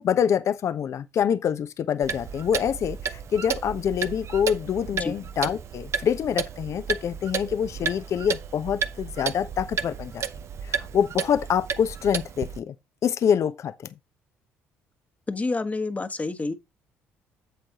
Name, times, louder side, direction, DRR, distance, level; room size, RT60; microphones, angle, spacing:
voice 1, 0.0-10.2 10.6-12.7 13.0-13.9, left 8 dB, 55° left, 0.8 m, -26 dB
Clock, 2.0-12.6, right 7 dB, 50° right, 0.8 m, -32 dB
voice 2, 15.3-16.5, left 3 dB, 25° left, 1.3 m, -28 dB
8.3 x 7.6 x 2.9 m
hypercardioid pair, 55°, 6 cm